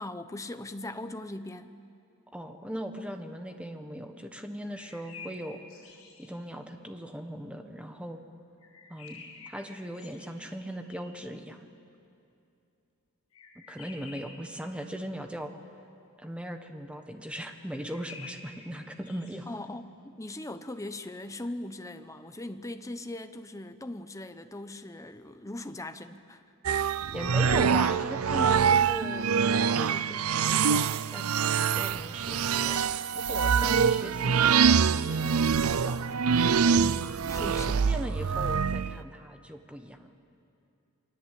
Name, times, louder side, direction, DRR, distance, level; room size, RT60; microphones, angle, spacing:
voice 1, 0.0-1.8 19.5-26.4 36.7-37.8, left 1 dB, 15° left, 9 dB, 0.9 m, -40 dB
voice 2, 2.3-5.6 6.2-8.2 8.9-11.6 13.5-15.5 16.2-19.5 27.1-36.0 37.4-37.6 37.9-40.1, equal, 5° right, 5 dB, 1.4 m, -39 dB
sound 1, 4.6-6.3 8.6-11.2 13.3-14.5 17.6-19.4, left 4 dB, 75° left, 6.8 m, -49 dB
sound 2, 26.7-39.0, right 6 dB, 80° right, 0.5 m, -25 dB
29.0 x 21.5 x 8.5 m, 2.7 s
head